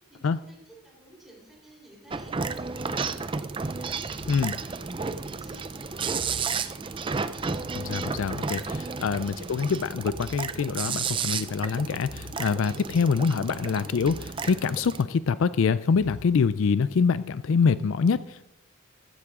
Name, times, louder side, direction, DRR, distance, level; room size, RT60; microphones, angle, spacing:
voice 1, 0.0-7.5 13.5-14.0, right 1 dB, ahead, -3 dB, 3.8 m, -52 dB
sound 1, 2.1-15.0, right 5 dB, 25° right, 0.4 m, -32 dB
sound 2, 4.1-5.4 6.1-7.4 8.0-9.3 10.0-11.3 12.0-13.3 14.0-15.2 15.9-16.2, left 2 dB, 90° left, 0.8 m, -48 dB
voice 2, 7.7-18.5, left 5 dB, 65° left, 16 dB, 0.4 m, -25 dB
14.5 x 13.5 x 3.7 m, 0.89 s
head